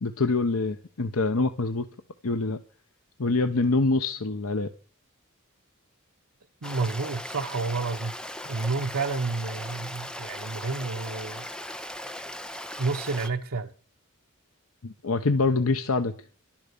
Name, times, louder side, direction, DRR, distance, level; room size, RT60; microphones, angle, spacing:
voice 1, 0.0-1.9 2.2-2.6 3.2-4.7 14.8-16.1, left 3 dB, 90° left, 0.9 m, -25 dB
Stream, 6.6-13.3, left 1 dB, 5° left, 0.9 m, -38 dB
voice 2, 6.6-8.1 8.4-11.5 12.8-13.7, right 3 dB, 90° right, 0.9 m, -30 dB
12.0 x 10.5 x 6.8 m
head